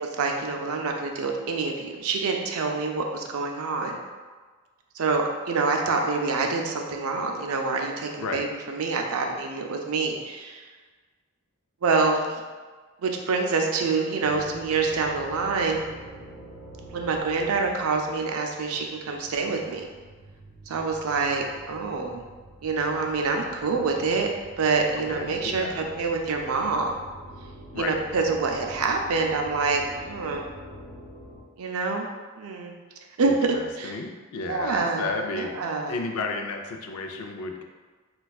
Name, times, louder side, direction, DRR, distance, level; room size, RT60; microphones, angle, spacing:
voice 1, 0.2-4.0 5.0-10.6 11.8-12.4 13.0-15.9 16.9-19.9 20.7-22.2 22.6-24.3 24.6-26.9 27.8-30.5 31.6-32.0 32.4-32.7 33.2-34.0 34.5-35.1 35.3-35.9, right 4 dB, 80° right, 2 dB, 0.4 m, -26 dB
sound 1, 14.2-31.4, right 1 dB, 55° left, 0.7 m, -46 dB
voice 2, 25.1-25.9 27.7-27.9 33.2-35.6 35.9-37.6, left 3 dB, 85° left, 3 dB, 0.4 m, -33 dB
4.3 x 2.3 x 2.3 m, 1.4 s
head